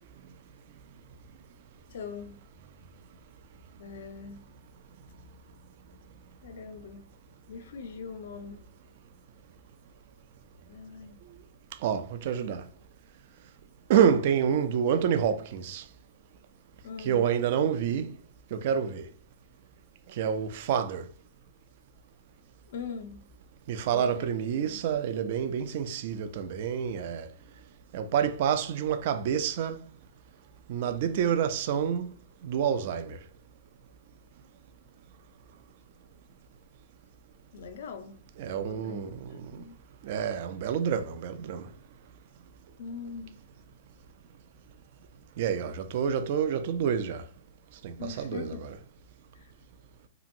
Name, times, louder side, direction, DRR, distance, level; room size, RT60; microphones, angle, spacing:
voice 1, 1.9-2.4 3.8-4.4 6.4-7.0 7.5-8.6 10.7-11.2 16.8-17.3 22.7-23.2 23.9-24.3 24.6-24.8 37.5-38.2 38.5-39.8 42.8-43.3 48.0-48.6 49.3-49.5, left 5 dB, 70° left, 0.5 m, -41 dB
voice 2, 11.8-12.6 13.9-15.8 17.0-18.1 18.5-19.1 20.2-21.1 23.7-27.3 27.9-29.8 30.7-32.1 32.4-33.2 38.4-39.5 40.0-41.7 45.4-47.2 47.8-48.7, right 8 dB, 55° right, 0.4 m, -28 dB
2.9 x 2.6 x 2.5 m
hypercardioid pair, 135°, 0 cm